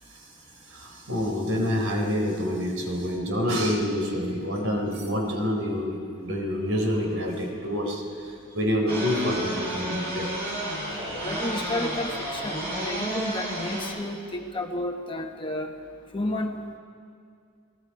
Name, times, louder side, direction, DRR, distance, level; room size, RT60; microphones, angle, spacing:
voice 1, 0.6-10.3, equal, 70° right, 1 dB, 4.0 m, -27 dB
sound 1, 8.9-13.9, right 1 dB, 45° right, 8.0 m, -31 dB
voice 2, 11.2-15.7 16.1-16.6, left 1 dB, 25° left, 3 dB, 1.3 m, -31 dB
29.0 x 20.0 x 4.8 m, 2.2 s
head